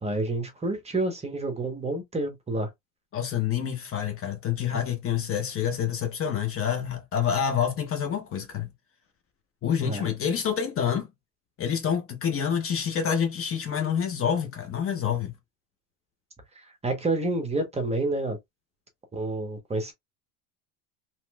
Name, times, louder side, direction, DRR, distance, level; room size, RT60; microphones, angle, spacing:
voice 1, 0.0-2.7 9.8-10.0 16.6-18.4 19.1-19.9, right 2 dB, 15° right, 1.0 m, -29 dB
voice 2, 3.1-8.7 9.6-11.1 11.6-15.3, left 8 dB, 30° left, 0.8 m, -27 dB
3.0 x 2.9 x 2.2 m
supercardioid pair, 115°, 42 cm